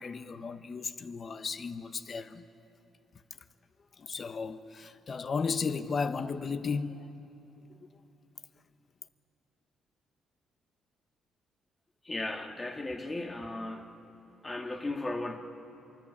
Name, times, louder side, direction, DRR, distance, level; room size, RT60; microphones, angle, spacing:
voice 1, 0.0-2.4 4.0-7.1, left 5 dB, 45° left, 1.0 m, -34 dB
voice 2, 12.1-14.0 14.4-15.4, left 2 dB, 20° left, 2.0 m, -36 dB
24.5 x 24.0 x 8.6 m
cardioid pair, 90°, 0 cm